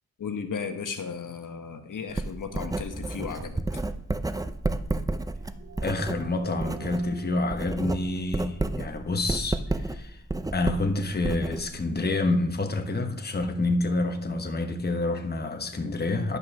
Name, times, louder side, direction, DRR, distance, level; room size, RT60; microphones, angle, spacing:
voice 1, 0.2-3.8, left 6 dB, 70° left, 1.1 m, -35 dB
Writing, 2.1-7.1 7.4-12.0, right 2 dB, 10° right, 0.5 m, -31 dB
sound 1, 5.1-10.6, right 6 dB, 50° right, 2.6 m, -47 dB
voice 2, 5.8-10.2 10.5-16.4, left 2 dB, 30° left, 1.1 m, -28 dB
11.0 x 5.3 x 6.4 m
wide cardioid pair, 85°, 32 cm